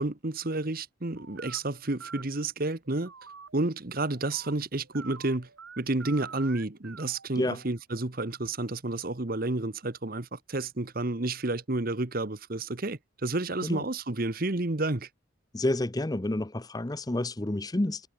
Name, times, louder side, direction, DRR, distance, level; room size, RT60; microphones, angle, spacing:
voice 1, 0.0-3.1 3.5-5.5 5.8-15.1, right 2 dB, 45° right, 1.2 m, -30 dB
sound 1, 1.2-1.6 2.0-2.2 2.8-8.1, right 5 dB, 85° right, 2.4 m, -47 dB
voice 2, 15.5-18.0, left 1 dB, 20° left, 0.6 m, -29 dB
head